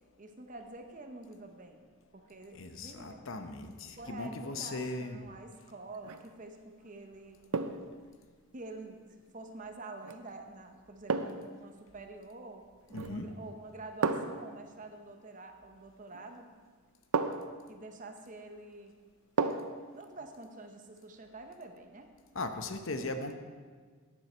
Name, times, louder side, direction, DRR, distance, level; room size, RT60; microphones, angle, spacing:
voice 1, 0.2-1.9 2.1-3.2 3.7-7.4 8.5-12.6 13.0-16.5 17.7-18.9 19.9-22.1, right 2 dB, 35° right, 5 dB, 0.9 m, -47 dB
voice 2, 2.5-5.3 12.9-13.3 22.3-23.3, left 2 dB, 60° left, 7 dB, 0.8 m, -38 dB
sound 1, 5.9-6.3 7.5-7.9 10.0-10.2 11.1-11.5 12.9-13.3 14.0-14.5 16.1-16.2 17.1-17.6 19.4-19.8 20.2-20.3, right 4 dB, 85° right, 0.6 m, -32 dB
11.0 x 9.6 x 4.4 m, 1.5 s
head